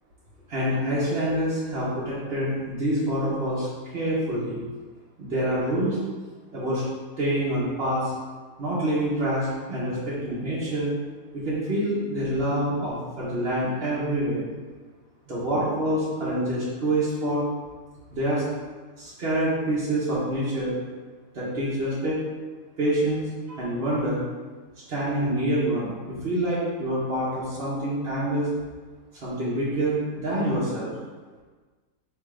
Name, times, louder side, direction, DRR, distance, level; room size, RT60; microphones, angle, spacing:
voice 1, 0.5-3.7 3.9-4.6 5.2-6.0 6.5-6.8 7.2-8.1 8.6-10.9 11.3-14.5 15.3-17.4 18.1-18.4 19.0-20.8 21.3-22.2 22.8-24.2 24.9-28.5 29.2-30.9, right 1 dB, 45° right, -9 dB, 1.0 m, -26 dB
3.5 x 2.9 x 4.7 m, 1.4 s
omnidirectional pair, 1.8 m